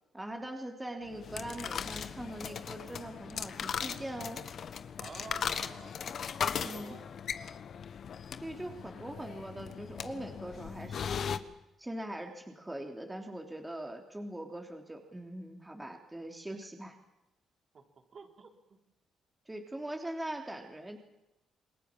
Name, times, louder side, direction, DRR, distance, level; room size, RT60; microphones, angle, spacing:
voice 1, 0.1-4.4 6.6-6.9 8.4-11.4 11.8-17.0 19.5-21.0, right 1 dB, 10° right, 2 dB, 3.2 m, -42 dB
sound 1, 1.1-11.4, left 7 dB, 55° left, 1.3 m, -38 dB
voice 2, 5.0-7.1 18.1-18.5, right 4 dB, 50° right, 2 dB, 4.4 m, -49 dB
28.0 x 21.5 x 7.4 m, 0.94 s
cardioid pair, 90°, 0 cm